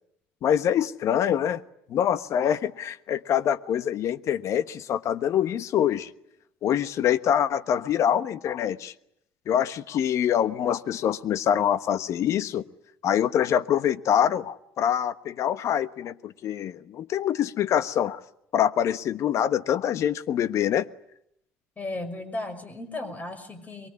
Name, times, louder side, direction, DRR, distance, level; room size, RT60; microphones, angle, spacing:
voice 1, 0.4-1.6 1.9-6.1 6.6-8.9 9.5-12.6 13.0-18.2 18.5-20.9, left 9 dB, 55° left, 1.2 m, -25 dB
voice 2, 21.8-23.9, left 2 dB, 25° left, 5.9 m, -35 dB
23.5 x 23.0 x 9.7 m
hypercardioid pair, 65°, 6 cm